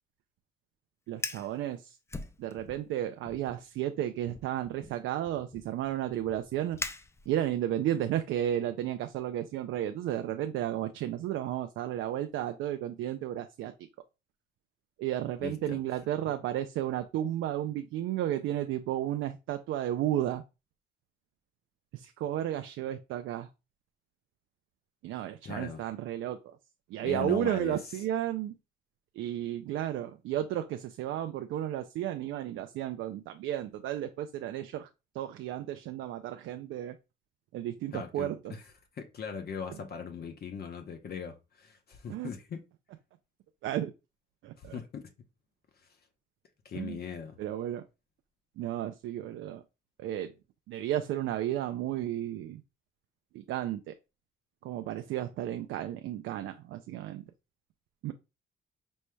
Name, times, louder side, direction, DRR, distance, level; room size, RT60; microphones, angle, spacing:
Fire, 1.1-1.5 2.1-2.9 3.2-3.6 4.3-7.6, left 2 dB, 15° left, 0.4 m, -42 dB
voice 1, 1.1-2.0 2.4-6.8 7.3-13.7 15.0-20.4 21.9-23.5 25.0-26.6 26.9-28.6 29.1-34.9 35.1-37.0 37.5-38.6 39.7-39.8 42.1-42.3 43.6-43.9 44.4-44.8 46.7-47.0 47.4-47.8 48.6-49.6 50.0-50.3 50.7-52.6 53.3-53.9 54.6-57.2 58.0-58.1, right 12 dB, 80° right, 0.4 m, -33 dB
voice 2, 15.4-15.8 25.4-25.8 27.0-27.8 37.9-38.6 39.0-42.6 44.6-45.0 46.6-47.4, left 6 dB, 50° left, 0.8 m, -39 dB
5.3 x 3.1 x 2.2 m
cardioid pair, 90°, 20 cm